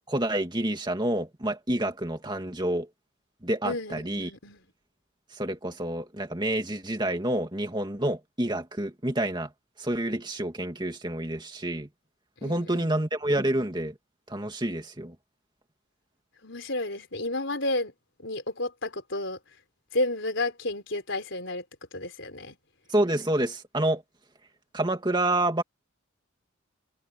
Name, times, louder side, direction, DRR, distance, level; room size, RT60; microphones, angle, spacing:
voice 1, 0.1-2.9 3.4-4.3 5.3-9.5 9.8-11.9 12.4-13.9 14.3-15.2 22.9-24.0 24.7-25.6, right 1 dB, 20° right, 2.3 m, -28 dB
voice 2, 3.6-4.6 12.4-12.9 16.4-17.9 18.2-19.4 19.9-21.6 21.9-22.6, left 2 dB, 60° left, 4.7 m, -31 dB
head